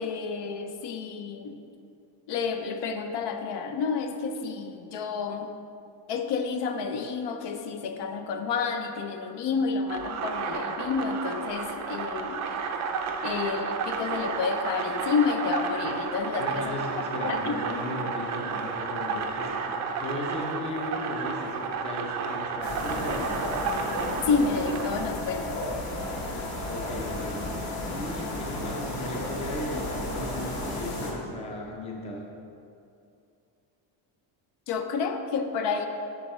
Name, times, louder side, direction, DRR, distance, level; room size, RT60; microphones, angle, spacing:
voice 1, 0.0-1.6 2.3-5.5 6.1-12.4 13.2-16.7 17.2-17.5 24.3-25.6 34.7-35.9, left 5 dB, 60° left, 6 dB, 0.6 m, -29 dB
sound 1, 9.9-25.1, right 5 dB, 35° right, 0.4 m, -32 dB
voice 2, 16.4-23.7 26.7-27.4 27.8-32.3, left 1 dB, 15° left, 0 dB, 0.5 m, -37 dB
sound 2, 22.6-31.1, left 1 dB, 35° left, 1.1 m, -33 dB
8.1 x 6.4 x 3.1 m, 2.5 s
cardioid pair, 160°, 48 cm